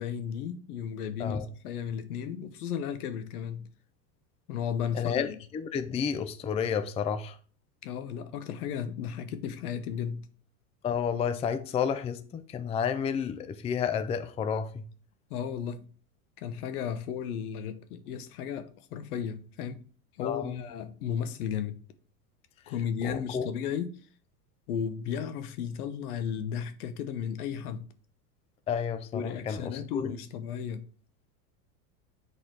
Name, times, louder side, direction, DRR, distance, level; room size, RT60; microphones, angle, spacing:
voice 1, 0.0-3.7 4.5-5.4 7.8-10.3 15.3-15.9 16.4-19.8 20.2-21.8 22.7-24.0 24.7-27.9 29.1-30.9, left 8 dB, 75° left, 1.2 m, -34 dB
voice 2, 4.9-7.4 10.8-14.8 20.2-20.6 23.0-23.5 28.7-30.1, left 7 dB, 15° left, 0.4 m, -31 dB
8.0 x 4.2 x 4.6 m
supercardioid pair, 115°, 45 cm